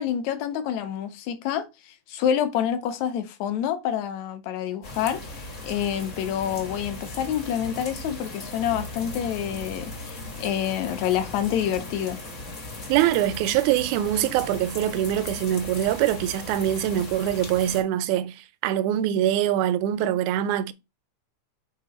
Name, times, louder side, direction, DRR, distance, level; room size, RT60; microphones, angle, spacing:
voice 1, 0.0-12.2, left 9 dB, 75° left, 1.9 m, -28 dB
sound 1, 4.8-17.8, left 2 dB, 45° left, 1.0 m, -38 dB
voice 2, 12.9-20.7, right 12 dB, 90° right, 2.0 m, -24 dB
6.4 x 3.7 x 4.1 m
omnidirectional pair, 3.3 m